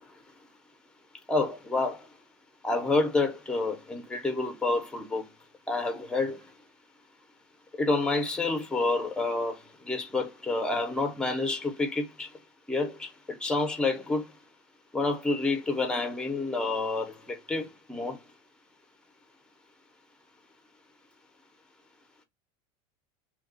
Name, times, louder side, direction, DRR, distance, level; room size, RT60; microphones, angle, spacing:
voice 1, 1.3-2.0 2.6-5.2 5.7-6.4 7.8-12.3 12.7-14.2 14.9-18.2, left 3 dB, 5° left, 0.7 m, -29 dB
2.8 x 2.3 x 3.7 m
supercardioid pair, 145°, 14 cm